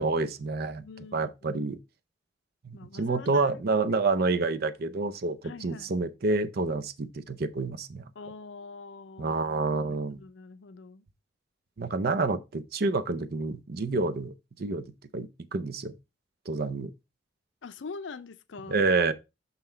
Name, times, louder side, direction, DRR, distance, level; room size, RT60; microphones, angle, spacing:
voice 1, 0.0-0.8 1.1-1.8 2.6-8.0 9.2-10.2 11.8-15.9 16.5-16.9 18.7-19.1, right 3 dB, 55° right, 0.6 m, -28 dB
voice 2, 0.8-1.6 2.7-3.5 3.9-4.0 5.4-5.9 8.2-11.1 17.6-18.8, left 4 dB, 70° left, 0.5 m, -44 dB
5.8 x 5.6 x 3.2 m
head